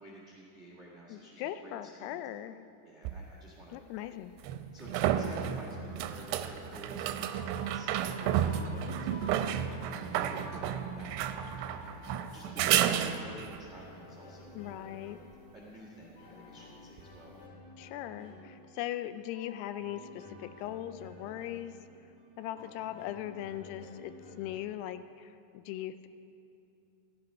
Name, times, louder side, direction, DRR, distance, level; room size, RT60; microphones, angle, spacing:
voice 1, 0.0-2.2 2.8-3.8 4.7-15.1 15.5-17.4, right 1 dB, 70° right, -4 dB, 0.6 m, -52 dB
voice 2, 1.1-2.6 3.7-4.3 14.5-15.2 17.8-21.7 22.4-26.1, left 12 dB, 85° left, 11 dB, 2.5 m, -39 dB
sound 1, 3.1-3.2 4.4-13.6 17.0-17.1, right 10 dB, 85° right, 2.7 m, -32 dB
sound 2, 6.5-24.6, left 2 dB, 50° left, 3.4 m, -52 dB
14.5 x 13.0 x 5.4 m, 2.8 s
omnidirectional pair, 4.8 m